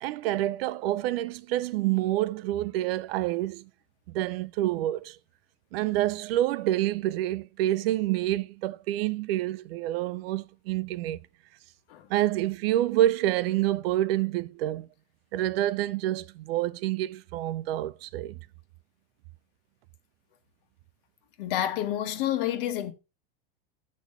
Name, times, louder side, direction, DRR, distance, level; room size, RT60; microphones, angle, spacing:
voice 1, 0.0-3.7 4.1-5.2 5.7-11.2 12.1-14.9 15.3-18.4, right 14 dB, 75° right, 0.6 m, -27 dB
voice 2, 21.4-22.9, left 12 dB, 65° left, 1.2 m, -29 dB
7.9 x 3.1 x 5.3 m
supercardioid pair, 120°, 30 cm